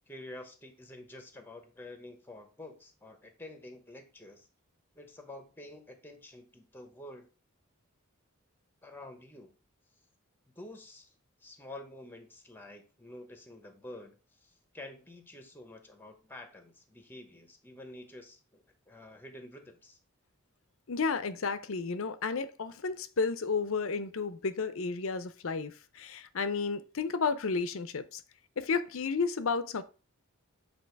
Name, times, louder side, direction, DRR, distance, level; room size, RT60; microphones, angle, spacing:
voice 1, 0.1-4.5 4.9-7.3 8.8-9.5 10.5-11.1 11.4-20.0, left 1 dB, 10° left, 1.1 m, -49 dB
voice 2, 20.9-28.2 28.6-29.8, left 4 dB, 65° left, 0.6 m, -32 dB
7.7 x 3.0 x 4.6 m
head